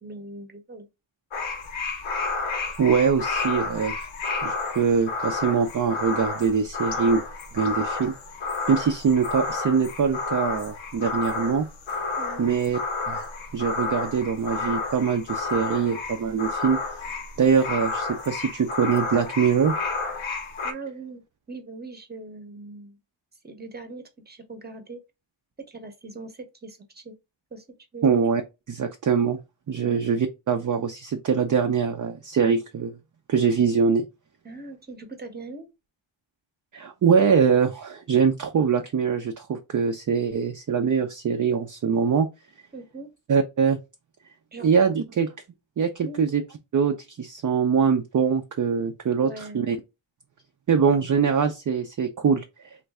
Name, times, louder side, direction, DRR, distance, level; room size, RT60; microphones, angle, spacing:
voice 1, 0.0-0.9 12.2-12.5 20.6-21.2 21.5-23.0 23.4-25.0 25.7-27.1 27.5-27.6 27.9-28.2 29.8-30.1 34.4-35.7 42.7-43.1 44.5-44.9 46.0-46.2 49.2-49.6, right 3 dB, 20° right, 0.8 m, -40 dB
sound 1, 1.3-20.7, left 4 dB, 90° left, 0.8 m, -31 dB
voice 2, 2.8-4.1 4.4-7.2 7.5-8.1 8.7-11.7 12.4-12.8 13.1-13.2 13.5-17.1 17.4-19.8 28.0-28.4 28.7-29.4 29.7-33.0 33.3-34.0 36.7-42.3 43.3-43.8 44.6-45.3 45.8-46.4 46.7-49.8 50.7-52.4, right 6 dB, 45° right, 0.5 m, -23 dB
3.2 x 2.5 x 3.4 m
wide cardioid pair, 110°, 46 cm